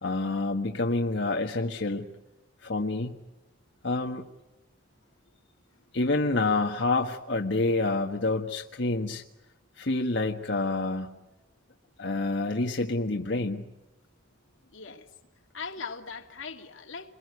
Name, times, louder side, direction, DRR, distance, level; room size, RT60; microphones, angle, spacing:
voice 1, 0.0-2.1 2.6-3.2 3.8-4.2 5.9-9.2 9.8-11.1 12.0-13.7, left 2 dB, 65° left, 1.5 m, -28 dB
voice 2, 14.7-15.1 15.5-17.1, left 5 dB, 90° left, 2.5 m, -40 dB
28.5 x 22.0 x 9.5 m
head